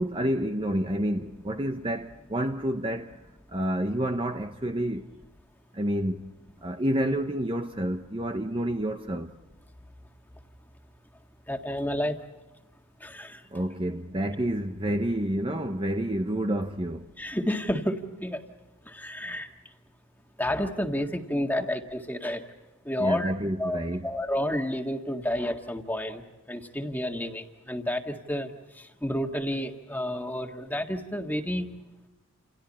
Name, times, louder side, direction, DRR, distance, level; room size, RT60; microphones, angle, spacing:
voice 1, 0.0-3.2 3.5-5.1 5.7-6.3 6.6-9.3 13.5-17.1 21.5-21.7 23.0-24.1, right 1 dB, 25° right, 0.8 m, -29 dB
voice 2, 11.5-12.2 13.0-13.4 17.2-18.4 18.9-19.5 20.4-22.4 22.9-23.3 23.6-26.2 26.5-28.5 29.0-31.7, left 1 dB, 10° left, 1.8 m, -30 dB
29.5 x 29.0 x 4.3 m
head